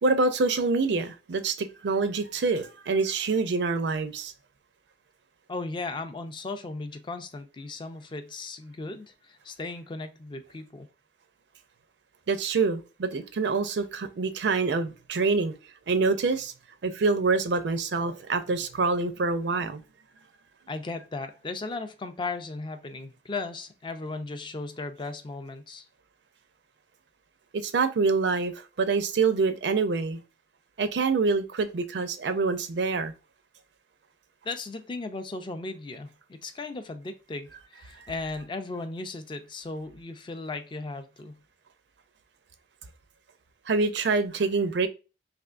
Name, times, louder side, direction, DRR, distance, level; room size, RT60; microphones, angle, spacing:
voice 1, 0.0-4.3 12.3-15.5 15.9-16.5 16.8-19.8 27.5-28.5 28.8-30.2 30.8-33.1 38.0-38.1 43.7-44.9, right 4 dB, 75° right, 0.5 m, -26 dB
voice 2, 5.5-10.9 20.7-25.9 34.4-41.4, left 3 dB, 25° left, 0.4 m, -36 dB
3.4 x 2.8 x 2.4 m
head